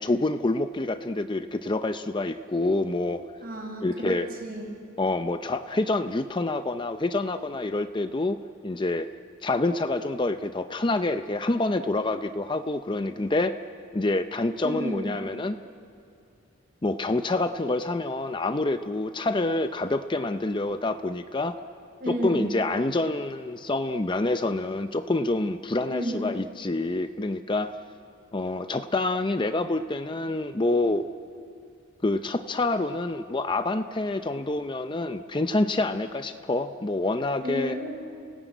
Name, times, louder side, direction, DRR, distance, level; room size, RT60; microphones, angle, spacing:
voice 1, 0.0-3.2 3.8-4.3 5.0-8.4 8.6-9.1 9.4-13.5 13.9-15.6 16.8-21.6 22.1-27.7 28.3-31.0 32.0-37.8, left 2 dB, 25° left, 9 dB, 0.5 m, -27 dB
voice 2, 3.4-4.8 14.6-15.1 22.0-22.5 25.9-26.4 37.4-38.0, equal, 45° right, 1 dB, 5.3 m, -32 dB
30.0 x 18.0 x 9.1 m, 2.5 s
head